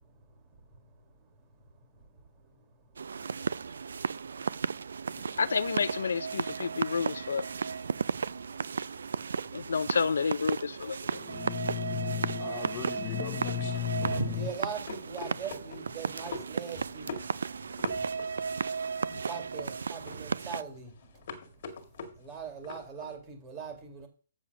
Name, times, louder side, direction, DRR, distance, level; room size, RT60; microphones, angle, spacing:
voice 1, 1.2-4.8 5.2-5.3 8.2-8.8 9.5-9.7 14.3-17.1 17.6-17.8 18.3-24.1, right 6 dB, 15° right, 2.0 m, -44 dB
sound 1, 3.0-20.6, right 5 dB, 75° right, 0.5 m, -34 dB
voice 2, 5.4-7.4 9.5-11.2, left 5 dB, 80° left, 0.5 m, -30 dB
voice 3, 11.1-14.5, left 11 dB, 20° left, 1.0 m, -35 dB
sound 2, 13.1-23.1, left 4 dB, 40° left, 1.8 m, -44 dB
7.4 x 7.0 x 5.9 m
hypercardioid pair, 170°, 0 cm